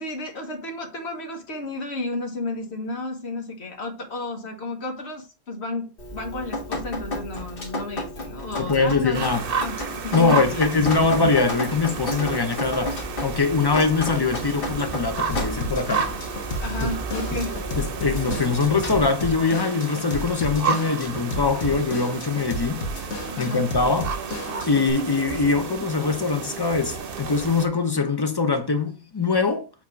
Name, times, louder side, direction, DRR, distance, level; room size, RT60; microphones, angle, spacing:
voice 1, 0.0-9.2 9.6-10.7 16.6-17.6 23.4-23.7, left 2 dB, 75° left, 1.5 m, -32 dB
Drip, 6.0-19.0, left 1 dB, 55° left, 1.5 m, -32 dB
voice 2, 8.6-9.5 10.1-16.1 16.8-16.9 17.8-22.8 23.4-24.1 24.7-29.7, left 4 dB, 25° left, 0.7 m, -23 dB
sound 1, 9.1-27.7, right 6 dB, 60° right, 0.9 m, -32 dB
Drum kit / Drum, 15.3-24.9, left 1 dB, 90° left, 1.2 m, -33 dB
7.4 x 2.9 x 4.6 m
omnidirectional pair, 1.1 m